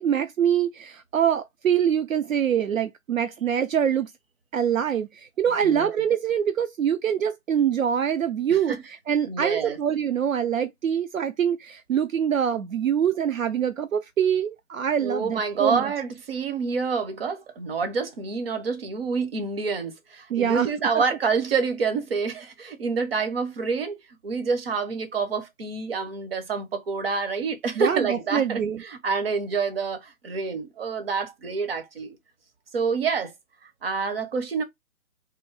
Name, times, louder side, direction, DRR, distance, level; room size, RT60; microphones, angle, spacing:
voice 1, 0.0-4.1 4.5-8.7 9.1-15.9 20.3-20.7 27.8-28.8, right 8 dB, 70° right, 0.6 m, -24 dB
voice 2, 9.2-9.8 15.0-24.0 24.2-32.2 32.7-33.3 33.6-34.6, right 5 dB, 45° right, 0.9 m, -27 dB
3.7 x 2.7 x 3.3 m
figure-of-eight pair, 140°, 42 cm